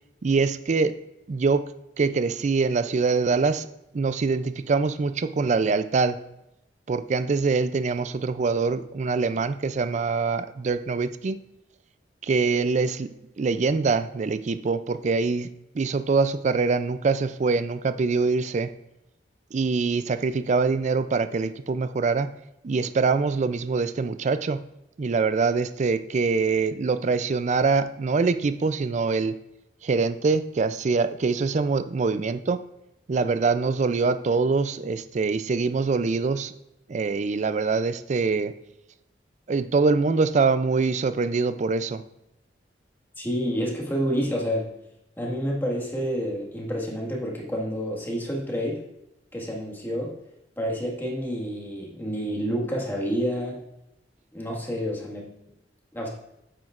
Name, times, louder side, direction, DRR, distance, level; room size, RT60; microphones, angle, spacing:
voice 1, 0.2-1.0 1.3-1.7 2.0-3.7 3.9-6.2 6.9-11.4 12.2-13.1 13.4-15.5 15.7-18.7 19.5-22.3 22.6-24.6 25.0-29.4 29.8-32.6 33.1-36.5 36.9-38.5 39.5-42.0, right 4 dB, 40° right, 12 dB, 0.4 m, -24 dB
voice 2, 43.2-44.7 45.2-48.8 49.3-50.2 50.6-53.6 54.3-55.3 55.9-56.1, equal, 10° left, -2 dB, 1.7 m, -29 dB
9.4 x 7.6 x 2.5 m, 0.86 s
head